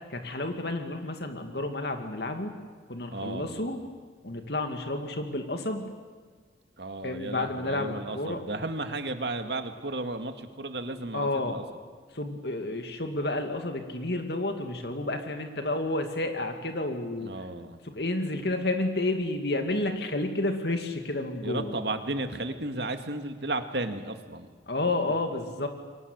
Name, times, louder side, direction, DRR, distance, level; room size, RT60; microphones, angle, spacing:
voice 1, 0.1-2.5 2.9-3.8 4.2-5.9 7.0-8.4 11.1-11.6 12.1-17.3 17.8-21.7 24.7-25.7, left 2 dB, 60° left, 5 dB, 2.4 m, -30 dB
voice 2, 3.1-3.6 6.8-11.6 17.2-17.8 21.4-24.5, right 2 dB, 65° right, 7 dB, 2.1 m, -34 dB
29.0 x 23.5 x 8.1 m, 1.5 s
head